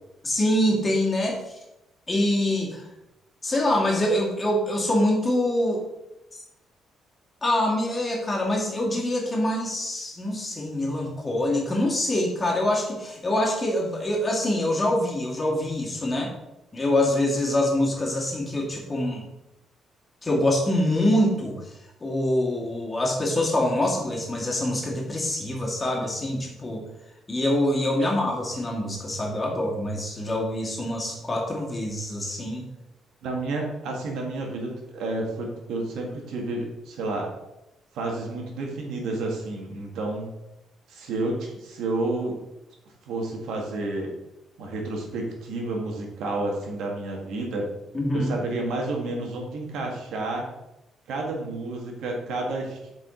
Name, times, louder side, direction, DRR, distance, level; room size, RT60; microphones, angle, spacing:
voice 1, 0.2-1.4 2.1-2.8 3.4-5.8 6.3-6.4 7.4-16.3 16.7-19.3 20.2-21.7 22.0-26.8 27.3-32.6 47.9-48.3, left 1 dB, 25° left, -2 dB, 2.2 m, -25 dB
voice 2, 33.2-37.3 37.9-40.3 40.9-42.3 43.0-44.1 44.6-47.7 48.1-50.5 51.1-52.9, right 2 dB, 80° right, 0 dB, 1.8 m, -30 dB
7.5 x 5.0 x 3.9 m, 0.91 s
cardioid pair, 90°, 0 cm